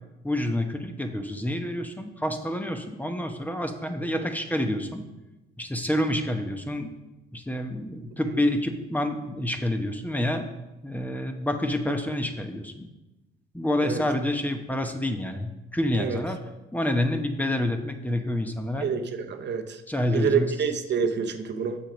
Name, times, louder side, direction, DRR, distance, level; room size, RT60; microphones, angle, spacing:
voice 1, 0.2-5.0 5.6-6.9 7.3-10.5 10.8-12.9 13.5-16.4 16.7-18.9 19.9-20.5, left 1 dB, 10° left, 5 dB, 1.0 m, -28 dB
voice 2, 18.8-19.8 20.1-21.8, right 6 dB, 60° right, 6 dB, 0.9 m, -27 dB
7.3 x 7.0 x 5.1 m, 1.0 s
cardioid pair, 90°, 20 cm